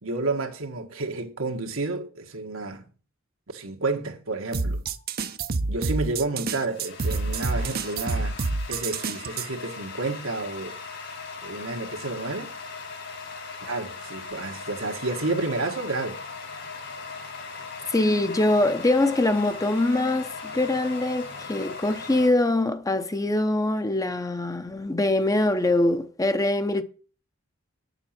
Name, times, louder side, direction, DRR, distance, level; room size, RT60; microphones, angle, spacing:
voice 1, 0.0-2.9 3.5-4.8 5.7-8.4 8.7-10.8 11.4-12.5 13.6-16.2, right 3 dB, 85° right, 1.8 m, -30 dB
sound 1, 4.5-9.5, right 3 dB, 50° right, 0.7 m, -28 dB
sound 2, 6.2-22.3, left 4 dB, 60° left, 2.4 m, -39 dB
voice 2, 17.9-26.8, left 2 dB, 15° left, 0.7 m, -23 dB
9.3 x 7.0 x 5.8 m
head